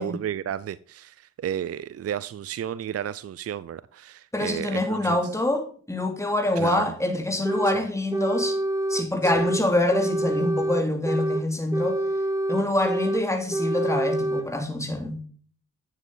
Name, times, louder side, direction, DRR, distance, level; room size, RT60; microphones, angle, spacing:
voice 1, 0.0-5.2 6.6-6.9 9.2-9.4, right 9 dB, 50° right, 0.5 m, -32 dB
voice 2, 4.3-8.6 8.9-12.0 12.5-15.2, left 1 dB, 10° left, 2.7 m, -25 dB
sound 1, 7.5-7.8 8.1-9.6 9.9-11.4 11.7-13.2 13.5-14.5, right 1 dB, 10° right, 1.4 m, -26 dB
9.5 x 7.3 x 3.9 m
supercardioid pair, 50°, 31 cm